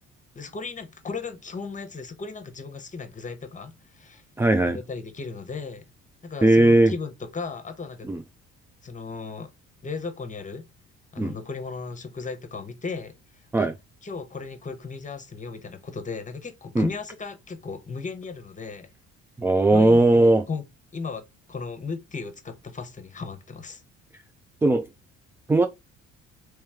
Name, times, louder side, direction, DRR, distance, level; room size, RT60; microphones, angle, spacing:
voice 1, 0.3-4.2 4.7-5.8 6.2-8.1 8.8-9.5 9.8-10.6 11.1-13.1 13.6-13.7 14.0-18.9 19.7-20.6 20.9-21.2 21.5-23.8, left 4 dB, 25° left, 0.9 m, -36 dB
voice 2, 4.4-4.8 6.4-6.9 8.1-8.2 11.2-11.3 13.5-13.7 16.8-16.9 19.4-20.4 24.6-24.8 25.5-25.7, right 2 dB, 10° right, 0.3 m, -18 dB
3.3 x 3.0 x 3.5 m
cardioid pair, 85°, 29 cm